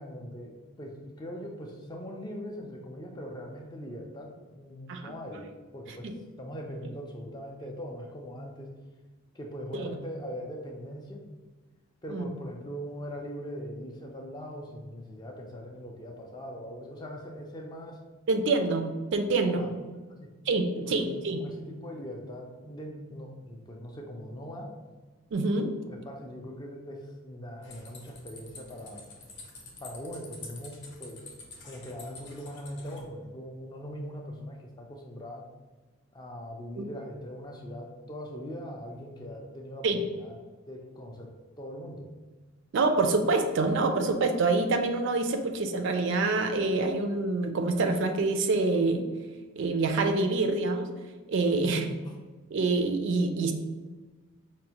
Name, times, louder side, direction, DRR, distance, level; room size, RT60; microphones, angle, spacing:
voice 1, 0.0-6.1 6.4-8.7 9.3-11.2 12.0-18.0 19.4-19.7 20.1-20.3 20.7-21.0 21.3-24.7 25.9-29.1 29.8-31.3 31.6-35.5 36.1-40.4 40.7-41.3 41.6-42.1 51.5-52.2, equal, 20° left, 1 dB, 0.3 m, -41 dB
voice 2, 18.3-19.7 20.5-21.4 25.3-25.7 36.8-36.9 39.8-40.0 42.7-49.0 49.6-50.9 51.3-51.8 52.5-53.5, right 3 dB, 55° right, 6 dB, 0.3 m, -26 dB
sound 1, 27.6-33.0, left 3 dB, 55° left, 0.7 m, -48 dB
5.1 x 2.0 x 2.8 m, 1.3 s
head